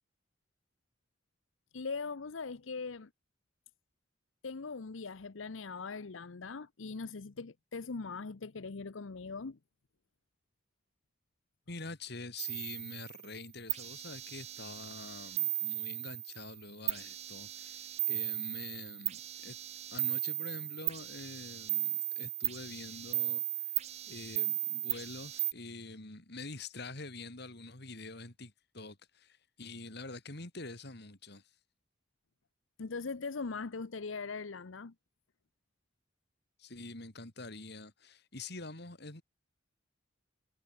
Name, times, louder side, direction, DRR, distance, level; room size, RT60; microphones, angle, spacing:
voice 1, 1.7-3.1 4.4-9.6 32.8-34.9, left 4 dB, 85° left, 0.8 m, -40 dB
voice 2, 11.7-19.6 19.9-23.8 24.1-31.4 36.6-39.2, left 3 dB, 60° left, 3.2 m, -46 dB
sound 1, 12.4-13.3 13.7-16.6 16.9-25.5, right 15 dB, 35° right, 0.4 m, -36 dB
head